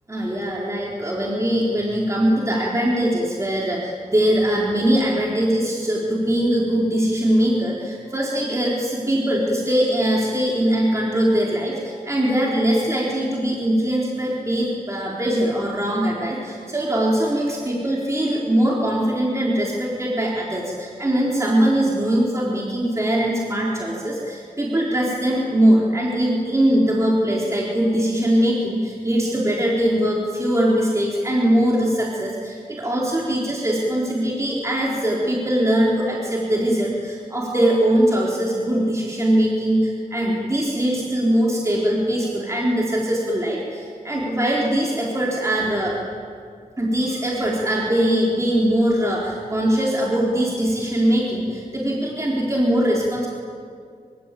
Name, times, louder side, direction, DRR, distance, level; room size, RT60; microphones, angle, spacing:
voice 1, 0.1-45.9 46.8-53.3, right 1 dB, 20° right, -4 dB, 4.3 m, -21 dB
26.5 x 25.0 x 8.6 m, 2.2 s
wide cardioid pair, 100°, 15 cm